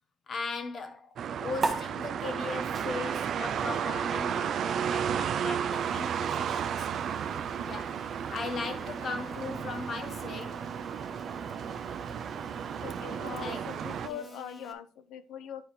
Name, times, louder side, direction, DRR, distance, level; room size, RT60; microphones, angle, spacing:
voice 1, 0.3-6.9 7.6-10.6 13.4-13.7 14.1-14.2, left 4 dB, 40° left, 1.3 m, -38 dB
sound 1, 1.2-14.1, right 8 dB, 55° right, 0.5 m, -33 dB
sound 2, 1.6-8.4, right 4 dB, 30° right, 1.0 m, -40 dB
sound 3, 5.7-14.7, equal, 5° left, 1.2 m, -48 dB
voice 2, 12.8-15.7, left 9 dB, 85° left, 0.8 m, -42 dB
10.0 x 4.6 x 3.3 m
cardioid pair, 135°, 0 cm